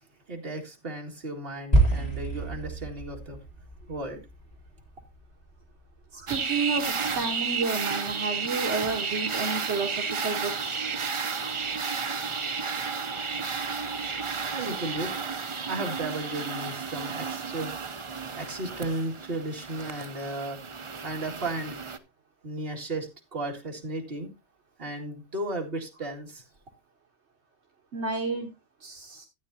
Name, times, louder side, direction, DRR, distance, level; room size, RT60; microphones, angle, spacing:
voice 1, 0.3-3.4 3.9-4.2 14.3-15.2 15.6-18.0 18.3-21.8 22.4-24.3 24.8-26.4, right 2 dB, 55° right, 2.3 m, -35 dB
sound 1, 1.7-6.1, right 2 dB, 35° left, 3.0 m, -28 dB
voice 2, 6.1-10.9 27.9-28.5 28.8-29.2, right 4 dB, 70° right, 1.5 m, -31 dB
sound 2, 6.3-22.0, right 5 dB, 35° right, 0.6 m, -32 dB
12.5 x 9.0 x 2.7 m
omnidirectional pair, 1.2 m